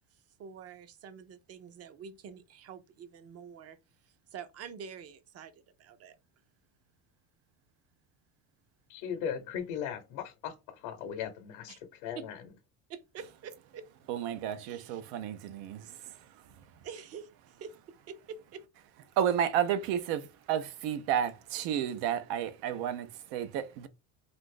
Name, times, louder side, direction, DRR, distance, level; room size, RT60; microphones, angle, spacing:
voice 1, 0.4-3.8 4.0-6.2 11.7-11.8 12.2-12.3 12.9-13.8 14.7-15.0 16.8-17.7 18.1-18.6, right 7 dB, 40° right, 0.5 m, -46 dB
voice 2, 8.9-12.4, left 8 dB, 80° left, 0.8 m, -38 dB
voice 3, 14.1-16.2 19.2-23.9, right 9 dB, 85° right, 0.6 m, -32 dB
2.5 x 2.5 x 3.7 m
cardioid pair, 120°, 41 cm